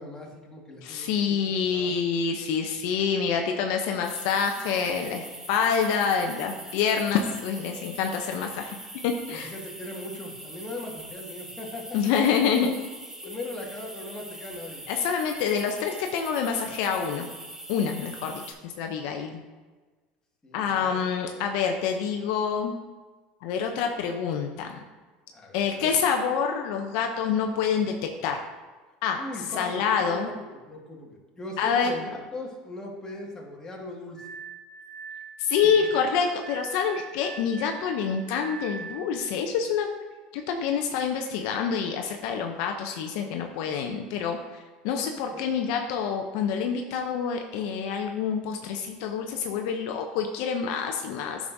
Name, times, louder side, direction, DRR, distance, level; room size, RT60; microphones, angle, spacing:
voice 1, 0.0-1.4 1.7-2.0 9.3-12.0 13.2-14.8 20.4-21.0 25.3-25.9 29.2-30.3 30.7-34.3 45.3-45.4, left 1 dB, 15° left, -2 dB, 1.9 m, -39 dB
voice 2, 0.8-8.8 9.0-9.5 11.9-12.8 13.2-13.3 14.9-17.3 17.7-19.4 20.5-22.7 23.4-24.8 25.5-28.4 29.0-29.2 29.6-30.3 31.6-31.9 35.4-39.9 40.3-44.4 44.8-51.4, left 6 dB, 70° left, 4 dB, 0.6 m, -27 dB
sound 1, 4.0-18.5, right 1 dB, 10° right, 1.1 m, -42 dB
Glass, 34.2-39.2, right 5 dB, 30° right, 2.3 m, -41 dB
9.2 x 6.1 x 2.7 m, 1.3 s
supercardioid pair, 95°, 4 cm